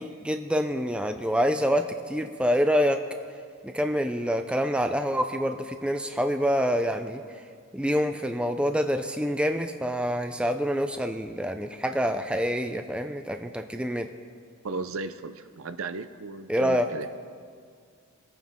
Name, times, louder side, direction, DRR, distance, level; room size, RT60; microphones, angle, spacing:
voice 1, 0.0-3.0 3.6-7.2 7.7-14.1 16.5-16.9, equal, 5° right, 6 dB, 0.4 m, -26 dB
voice 2, 14.6-17.1, right 3 dB, 65° right, 11 dB, 0.6 m, -35 dB
24.5 x 9.2 x 3.6 m, 2.1 s
head